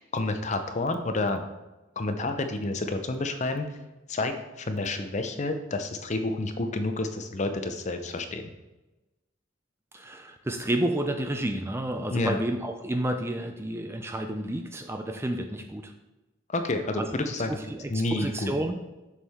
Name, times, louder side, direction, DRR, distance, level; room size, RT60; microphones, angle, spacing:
voice 1, 0.1-1.4 2.0-3.7 4.1-8.5 12.1-12.4 16.5-17.5 17.9-18.5, left 2 dB, 35° left, 7 dB, 0.6 m, -29 dB
voice 2, 9.9-15.9 17.0-17.1 17.5-18.7, right 1 dB, 15° right, 6 dB, 0.4 m, -30 dB
7.2 x 6.4 x 3.5 m, 1.1 s
head